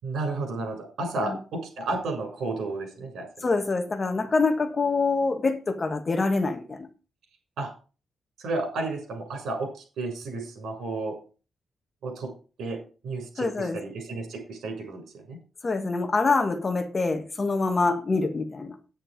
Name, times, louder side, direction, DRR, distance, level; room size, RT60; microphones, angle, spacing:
voice 1, 0.0-3.5 7.6-7.7 8.4-11.1 12.0-12.3 12.6-12.8 13.0-15.4, right 2 dB, 80° right, 6.5 m, -32 dB
voice 2, 3.4-6.9 13.4-13.8 15.6-18.8, left 3 dB, 25° left, 1.3 m, -25 dB
10.0 x 9.2 x 5.1 m
wide cardioid pair, 160°, 0 cm